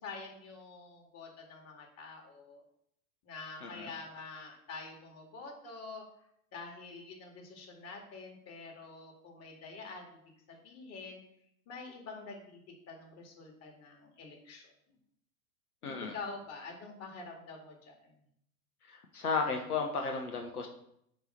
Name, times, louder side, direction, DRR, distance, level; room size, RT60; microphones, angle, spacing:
voice 1, 0.0-2.6 3.2-6.0 6.5-10.2 10.5-11.2 11.7-12.6 12.9-14.7 16.0-18.1, left 4 dB, 35° left, 1 dB, 2.2 m, -46 dB
voice 2, 15.8-16.1 18.9-20.7, left 4 dB, 85° left, 3 dB, 1.2 m, -34 dB
9.1 x 3.3 x 5.7 m, 0.73 s
hypercardioid pair, 100°, 43 cm